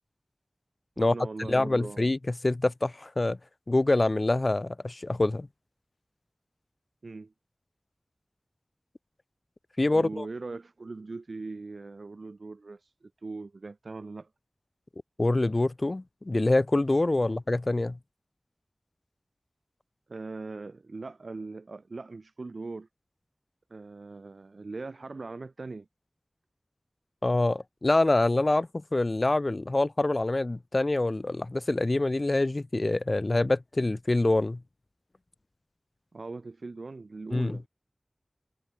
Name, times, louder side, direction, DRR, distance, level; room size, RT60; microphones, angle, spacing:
voice 1, 1.0-2.0 7.0-7.3 9.9-14.3 17.2-17.4 20.1-22.9 23.7-25.9 36.1-37.7, right 3 dB, 90° right, 2.3 m, -40 dB
voice 2, 1.5-2.2 2.4-3.4 3.7-5.5 9.8-10.3 15.2-18.0 27.2-34.6 37.3-37.6, left 2 dB, 50° left, 0.3 m, -25 dB
wide cardioid pair, 40°, 0 cm